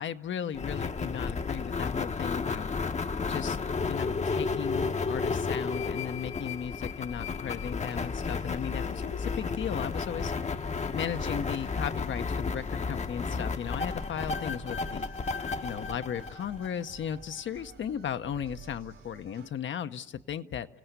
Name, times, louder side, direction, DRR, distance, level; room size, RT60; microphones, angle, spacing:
voice 1, 0.0-2.7 3.3-3.6 3.9-10.3 10.9-15.1 15.6-20.7, left 8 dB, 70° left, 10 dB, 0.9 m, -36 dB
sound 1, 0.5-17.0, left 4 dB, 35° left, 0.8 m, -32 dB
little cloud, 7.9-19.5, right 5 dB, 85° right, 4.1 m, -51 dB
29.5 x 17.0 x 8.1 m, 0.96 s
cardioid pair, 80°, 20 cm